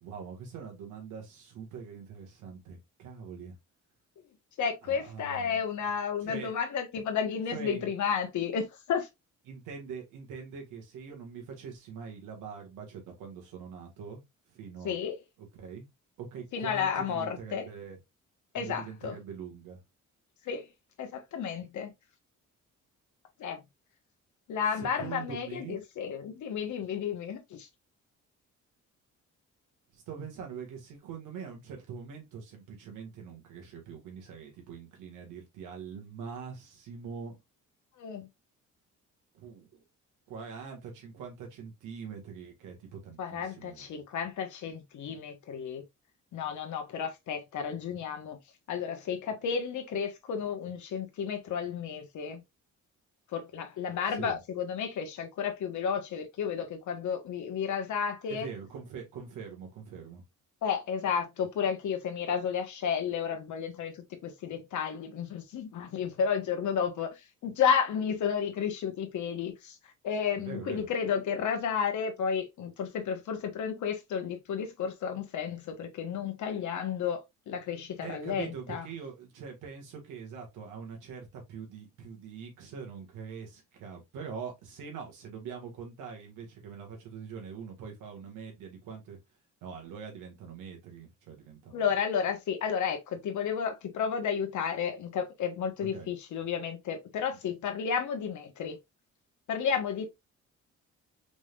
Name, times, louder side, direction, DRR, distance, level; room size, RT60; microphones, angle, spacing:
voice 1, 0.0-3.5 4.8-5.6 6.2-6.5 7.5-7.9 9.5-14.2 14.5-15.0 15.4-15.9 16.2-18.0 18.6-19.8 24.8-25.8 29.9-37.3 39.3-39.8 40.3-43.9 54.1-54.4 58.3-60.2 70.5-70.9 78.0-89.2 89.6-91.9 95.8-96.1, right 6 dB, 90° right, 2.0 m, -43 dB
voice 2, 4.6-9.1 14.8-15.1 16.5-17.6 18.5-19.2 20.4-20.7 21.0-21.9 23.4-23.6 24.5-27.7 38.0-38.3 43.2-45.8 46.3-48.4 48.7-52.4 53.3-58.5 60.6-63.9 64.2-69.8 70.0-77.2 77.5-78.8 91.7-98.8 99.5-100.1, left 7 dB, 75° left, 1.4 m, -32 dB
5.1 x 3.5 x 2.5 m
cardioid pair, 90°, 30 cm